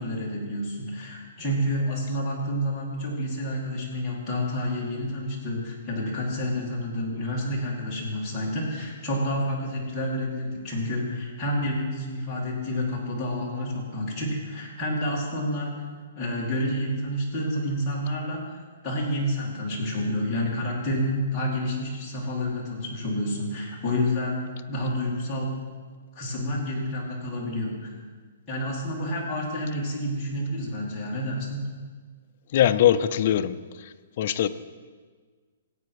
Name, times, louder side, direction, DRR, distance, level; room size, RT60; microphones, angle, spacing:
voice 1, 0.0-15.7 16.2-25.6 26.2-27.9 28.5-31.7, equal, 10° left, -7 dB, 2.3 m, -29 dB
voice 2, 32.5-33.6 34.2-34.5, left 10 dB, 35° left, 11 dB, 0.4 m, -21 dB
16.0 x 8.5 x 4.7 m, 1.5 s
hypercardioid pair, 175°, 0 cm